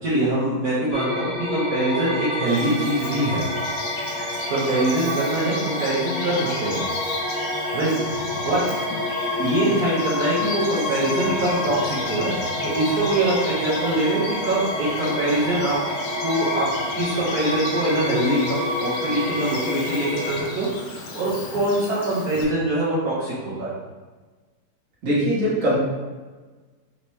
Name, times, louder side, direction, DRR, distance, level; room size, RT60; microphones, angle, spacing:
voice 1, 0.0-3.4 4.2-6.8 7.7-7.9 8.4-8.6 9.4-12.3 12.6-15.8 16.2-16.7 16.9-23.7, right 1 dB, 65° right, -10 dB, 1.4 m, -23 dB
sound 1, 0.9-20.4, left 2 dB, 60° left, 0.3 m, -28 dB
Bird vocalization bird call bird song, 2.5-22.4, left 3 dB, 80° left, 1.2 m, -36 dB
voice 2, 25.0-25.7, equal, 50° right, -8 dB, 1.7 m, -21 dB
4.5 x 2.8 x 3.1 m, 1.3 s
omnidirectional pair, 1.8 m